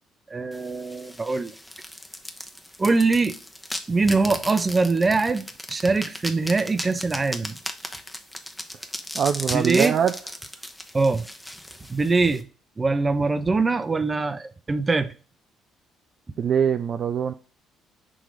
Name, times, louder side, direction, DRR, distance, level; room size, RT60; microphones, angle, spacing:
voice 1, 0.3-1.5 2.8-3.3 3.9-7.6 9.5-9.9 10.9-11.3 11.9-12.5 12.8-15.1, right 3 dB, 30° right, 0.7 m, -23 dB
sound 1, 0.5-12.4, left 1 dB, 5° left, 1.0 m, -36 dB
voice 2, 9.1-10.1 16.4-17.3, right 8 dB, 50° right, 0.3 m, -23 dB
6.2 x 3.0 x 5.1 m
hypercardioid pair, 50°, 0 cm